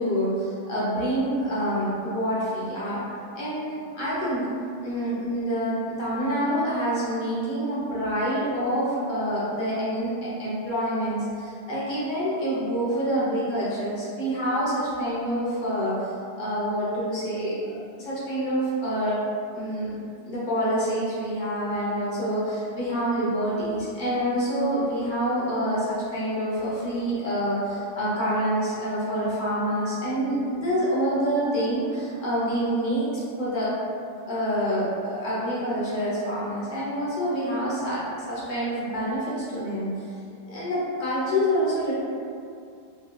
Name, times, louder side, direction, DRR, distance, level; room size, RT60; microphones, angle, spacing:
voice 1, 0.0-3.0 3.3-4.5 4.8-16.1 16.4-19.2 19.5-20.0 20.3-33.1 33.4-33.7 34.3-39.9 40.5-41.9, equal, 50° left, -8 dB, 0.5 m, -27 dB
3.9 x 2.2 x 2.3 m, 2.4 s
omnidirectional pair, 1.9 m